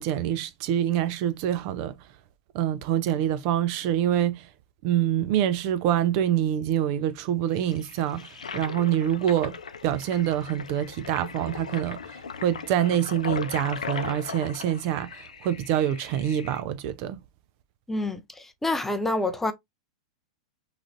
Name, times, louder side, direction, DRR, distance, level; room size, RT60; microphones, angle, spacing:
voice 1, 0.0-1.9 2.5-4.4 4.8-8.2 8.5-9.6 9.8-12.0 12.4-17.2, right 11 dB, 50° right, 0.4 m, -25 dB
Toilet flush, 7.5-16.6, left 6 dB, 85° left, 0.4 m, -38 dB
voice 2, 17.9-19.5, left 2 dB, 10° left, 0.5 m, -27 dB
3.1 x 2.4 x 2.5 m
hypercardioid pair, 105°, 4 cm